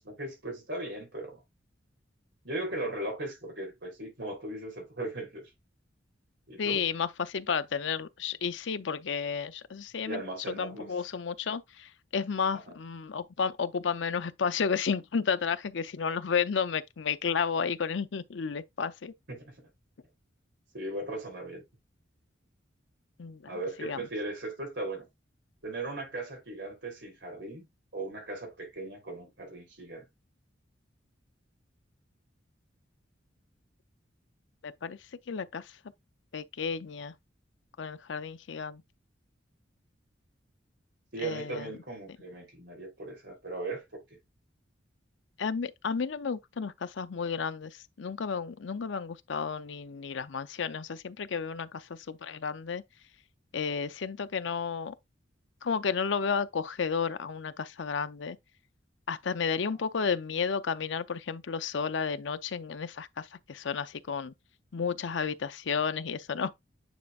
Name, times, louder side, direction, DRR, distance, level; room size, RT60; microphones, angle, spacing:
voice 1, 0.0-1.4 2.4-5.5 6.5-6.8 10.0-10.9 12.7-12.8 19.3-19.7 20.7-21.6 23.4-25.1 25.6-27.6 27.9-30.1 41.1-44.2, right 2 dB, 65° right, 3.4 m, -38 dB
voice 2, 6.6-10.2 10.5-19.1 23.2-23.4 23.8-24.0 34.6-35.0 35.3-35.7 36.3-37.1 37.8-38.8 41.2-41.7 45.4-52.8 53.5-54.9 55.6-58.4 59.1-64.3 64.7-66.5, left 6 dB, 75° left, 0.5 m, -32 dB
9.2 x 4.7 x 2.4 m
head